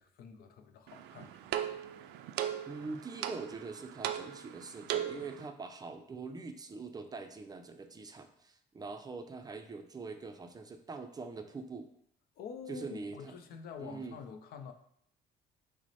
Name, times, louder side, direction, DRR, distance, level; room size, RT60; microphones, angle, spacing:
voice 1, 0.0-2.0 12.4-14.7, left 6 dB, 65° left, 7 dB, 0.5 m, -47 dB
sound 1, 0.9-5.5, right 11 dB, 80° right, 0.4 m, -38 dB
voice 2, 2.7-11.9 12.7-13.4 13.8-14.2, right 4 dB, 25° right, 6 dB, 0.4 m, -43 dB
6.0 x 2.1 x 4.1 m, 0.68 s
cardioid pair, 110°, 17 cm